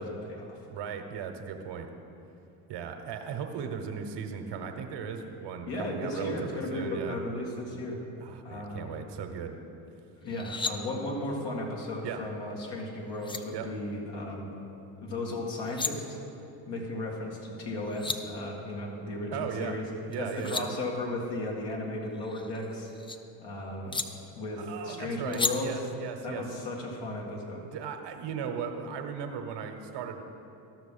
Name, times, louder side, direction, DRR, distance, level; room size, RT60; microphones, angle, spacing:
voice 1, 0.0-0.6 5.7-8.0 8.4-8.9 10.2-14.5 15.0-16.2 16.7-19.9 20.2-22.9 23.4-24.0 24.4-25.8 26.2-27.7, left 1 dB, 60° left, -1 dB, 2.2 m, -35 dB
voice 2, 0.7-1.9 2.7-7.2 8.2-9.6 12.0-12.2 13.5-13.7 19.3-19.8 20.1-20.7 24.6-26.4 27.7-30.2, right 7 dB, 60° right, 6 dB, 1.1 m, -37 dB
sound 1, 10.3-10.7 12.8-12.9 13.2-13.4 15.5-15.9 17.6-17.7 17.8-18.2 20.1-20.7 22.1-23.2 23.9-24.1 25.3-25.5, left 4 dB, 10° left, 0.4 m, -33 dB
13.5 x 6.1 x 5.6 m, 2.8 s
hypercardioid pair, 70°, 48 cm